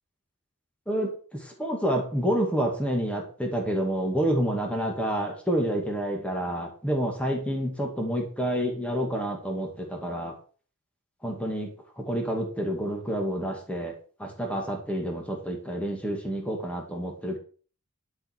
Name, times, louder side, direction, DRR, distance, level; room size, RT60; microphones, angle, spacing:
voice 1, 0.9-10.3 11.2-11.7 12.0-17.4, equal, 5° left, 1 dB, 2.4 m, -28 dB
12.0 x 5.7 x 6.1 m, 0.40 s
head